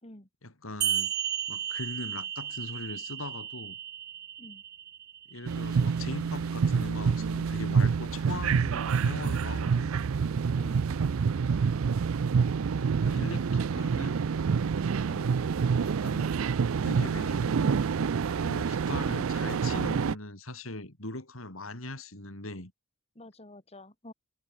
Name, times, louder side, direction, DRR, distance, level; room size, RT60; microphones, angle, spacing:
voice 1, 0.4-1.1 1.5-3.8 5.3-9.9 12.7-14.4 15.8-16.2 16.8-18.0 18.4-22.7, left 2 dB, 85° left, 5.1 m, -40 dB
sound 1, 0.8-5.8, right 10 dB, 55° right, 4.9 m, -34 dB
sound 2, 5.5-20.1, right 6 dB, 90° right, 0.4 m, -27 dB
voice 2, 10.6-10.9 15.1-15.4 23.1-24.1, left 1 dB, 30° left, 4.3 m, -49 dB
head